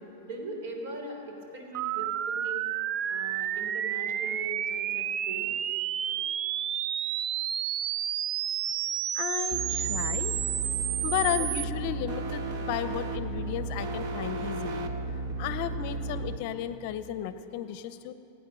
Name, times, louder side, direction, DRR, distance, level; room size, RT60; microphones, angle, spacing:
voice 1, 0.0-2.7 3.1-5.5, right 1 dB, 65° right, 2 dB, 3.5 m, -40 dB
sound 1, 1.7-11.6, right 11 dB, 35° right, 0.3 m, -31 dB
voice 2, 9.1-10.4 11.0-14.9 15.4-18.1, left 10 dB, 50° left, 12 dB, 0.7 m, -33 dB
sound 2, 9.5-16.4, right 2 dB, 50° right, 1.2 m, -34 dB
25.5 x 9.1 x 6.2 m, 2.9 s
supercardioid pair, 150°, 0 cm